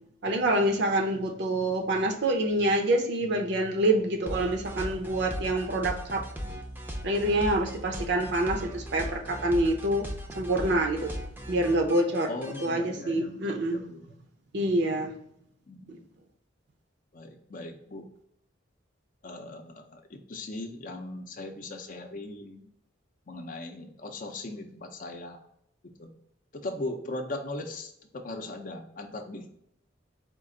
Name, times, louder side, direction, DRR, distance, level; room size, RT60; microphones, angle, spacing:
voice 1, 0.2-6.2 7.0-10.1 10.4-11.1 11.5-12.3 12.6-13.8 14.5-15.1 15.9-16.0, right 1 dB, 60° right, 4 dB, 0.7 m, -26 dB
sound 1, 4.3-12.7, equal, 10° right, 0.5 m, -38 dB
voice 2, 12.3-14.2 15.7-16.1 17.1-18.1 19.2-22.7 23.3-25.4 26.0-26.1 26.5-29.5, left 2 dB, 45° left, 5 dB, 0.6 m, -39 dB
4.5 x 2.5 x 3.7 m, 0.73 s
head